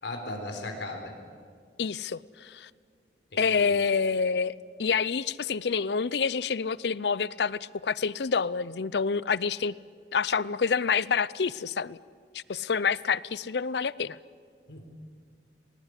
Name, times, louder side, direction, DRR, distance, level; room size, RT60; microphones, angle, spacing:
voice 1, 0.0-1.1 3.3-3.7 14.7-14.9, left 2 dB, 85° left, 3 dB, 3.9 m, -37 dB
voice 2, 1.8-2.7 3.4-4.5 4.8-9.7 10.1-12.0 12.3-14.2, left 5 dB, 65° left, 20 dB, 0.6 m, -27 dB
20.5 x 20.0 x 9.9 m, 2.1 s
head